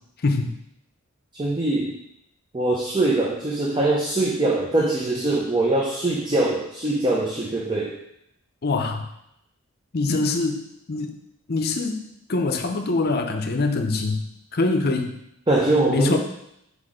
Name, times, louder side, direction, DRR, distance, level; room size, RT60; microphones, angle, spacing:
voice 1, 0.2-0.5 8.6-9.1 9.9-11.1 11.5-12.0 12.3-14.2 14.5-15.2 15.9-16.2, left 3 dB, 45° left, 5 dB, 0.6 m, -24 dB
voice 2, 1.3-1.9 2.5-8.0 15.5-16.2, right 2 dB, 20° right, -2 dB, 0.6 m, -22 dB
5.0 x 4.2 x 5.0 m, 0.78 s
head